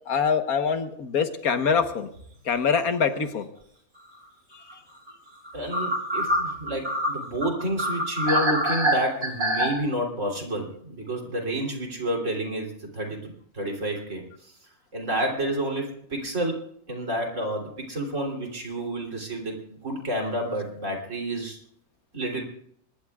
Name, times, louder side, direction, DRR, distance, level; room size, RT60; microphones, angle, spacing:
voice 1, 0.1-2.1 2.5-3.5, left 6 dB, 85° left, 7 dB, 1.7 m, -24 dB
sound 1, 1.6-1.8 2.2-2.3 4.7-4.8 5.1-5.2 5.4-9.7, equal, 75° right, 4.6 m, -25 dB
voice 2, 5.5-14.2 14.9-21.6 22.1-22.4, right 1 dB, 60° right, 0 dB, 3.7 m, -30 dB
24.0 x 21.0 x 2.4 m, 0.71 s
omnidirectional pair, 1.5 m